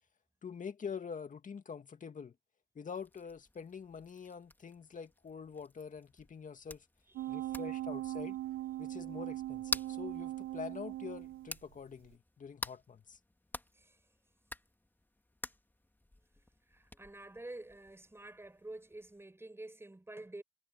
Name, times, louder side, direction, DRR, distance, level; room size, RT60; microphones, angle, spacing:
voice 1, 0.4-2.3 2.7-6.9 7.3-8.4 8.8-13.2, left 6 dB, 40° left, 2.2 m, -45 dB
sound 1, 2.9-19.2, left 1 dB, 10° left, 2.7 m, -49 dB
voice 2, 7.1-7.6 13.7-14.0 16.7-20.4, right 2 dB, 10° right, 6.9 m, -49 dB
sound 2, 7.2-11.7 12.1-12.2, right 15 dB, 80° right, 0.4 m, -40 dB
cardioid pair, 90°, 20 cm